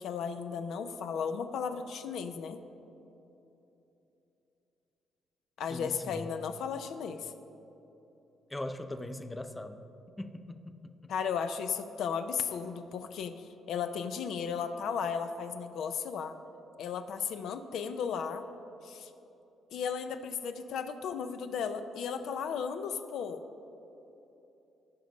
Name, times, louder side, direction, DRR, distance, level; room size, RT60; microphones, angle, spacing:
voice 1, 0.0-2.6 5.6-7.3 11.1-16.4 16.8-18.4 18.8-19.1 19.7-23.4, left 6 dB, 75° left, 9 dB, 0.5 m, -35 dB
voice 2, 5.7-6.3 8.5-9.8 10.2-11.1, left 1 dB, 15° left, 9 dB, 0.5 m, -41 dB
14.0 x 5.3 x 5.3 m, 3.0 s
cardioid pair, 90°, 0 cm